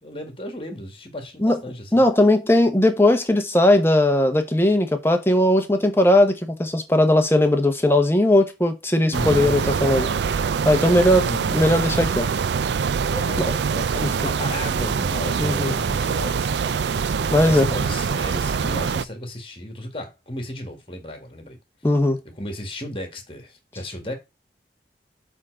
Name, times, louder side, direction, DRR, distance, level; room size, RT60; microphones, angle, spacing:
voice 1, 0.0-2.1 9.1-10.3 11.2-11.8 13.1-16.8 17.4-21.6 22.4-24.1, left 1 dB, 30° left, 1.8 m, -34 dB
voice 2, 1.9-10.1 10.6-11.2 11.5-12.3 13.4-13.5 14.0-14.1 15.4-15.7 17.3-17.7 21.8-22.2, left 1 dB, 15° left, 1.0 m, -18 dB
sound 1, 9.1-19.0, right 6 dB, 80° right, 0.4 m, -24 dB
7.3 x 3.7 x 6.4 m
head